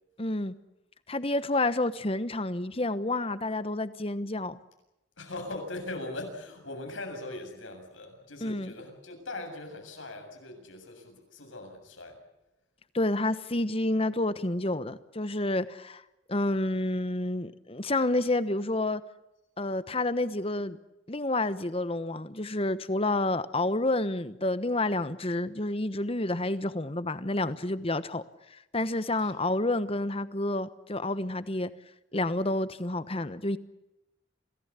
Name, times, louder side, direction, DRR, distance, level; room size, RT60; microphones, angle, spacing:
voice 1, 0.2-0.5 1.1-4.6 8.4-8.7 12.9-16.0 16.3-19.0 19.6-20.8 21.1-28.2 28.5-31.7 32.1-33.6, left 2 dB, 30° left, 1.1 m, -29 dB
voice 2, 5.2-12.2 29.2-29.3, left 2 dB, 85° left, 7.4 m, -40 dB
27.5 x 18.0 x 8.3 m
head